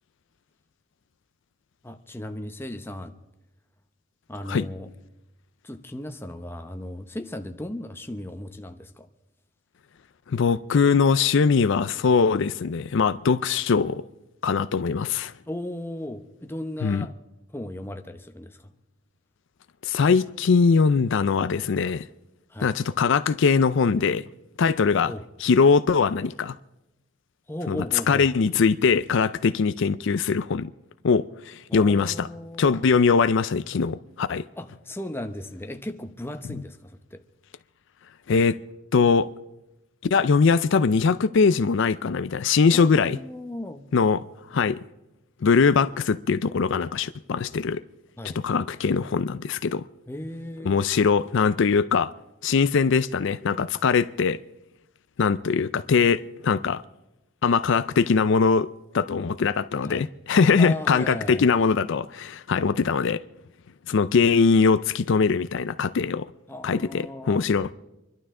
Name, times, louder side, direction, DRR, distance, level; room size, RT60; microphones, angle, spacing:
voice 1, 1.8-3.1 4.3-4.9 5.6-9.1 15.5-17.1 17.5-18.7 22.5-22.7 25.0-25.2 27.5-28.3 31.7-32.8 34.6-37.2 42.7-43.9 48.2-48.4 50.1-50.8 59.8-60.1 60.6-61.5 66.5-67.4, left 1 dB, 10° left, 0.9 m, -36 dB
voice 2, 10.3-14.0 14.4-15.3 16.8-17.1 19.8-22.1 22.6-24.3 24.6-25.1 25.4-26.6 27.7-27.8 28.1-30.7 31.0-32.3 32.6-34.5 38.3-38.6 38.9-39.3 40.1-43.2 43.9-44.2 44.5-44.8 45.4-47.8 48.3-49.8 50.6-52.1 52.4-54.4 55.2-56.8 57.4-58.7 58.9-63.2 63.9-66.3 66.6-67.7, left 5 dB, 60° left, 0.4 m, -21 dB
27.0 x 12.0 x 3.7 m
head